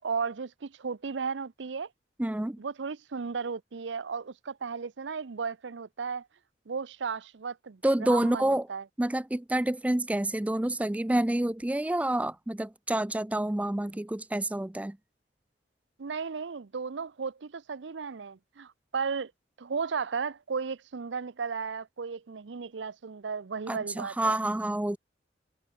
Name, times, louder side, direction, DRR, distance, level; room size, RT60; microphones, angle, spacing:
voice 1, 0.0-1.9 2.6-6.3 6.7-8.8 16.0-19.3 19.6-24.4, right 5 dB, 85° right, 0.6 m, -35 dB
voice 2, 2.2-2.6 7.8-8.7 9.0-15.0 23.7-25.0, right 1 dB, 10° right, 0.3 m, -28 dB
head